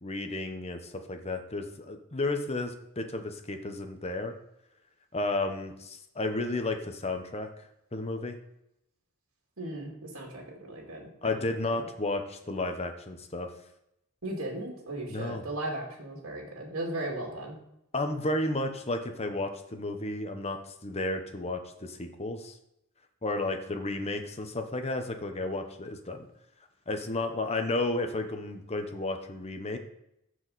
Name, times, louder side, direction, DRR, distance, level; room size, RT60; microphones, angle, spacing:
voice 1, 0.0-4.3 5.1-7.5 7.9-8.4 11.2-13.5 15.1-15.4 17.9-22.5 23.2-26.3 26.9-29.8, left 2 dB, 30° left, 6 dB, 1.0 m, -32 dB
voice 2, 9.6-11.9 14.2-17.6, right 1 dB, 75° right, -1 dB, 2.4 m, -37 dB
14.0 x 4.8 x 4.1 m, 0.81 s
head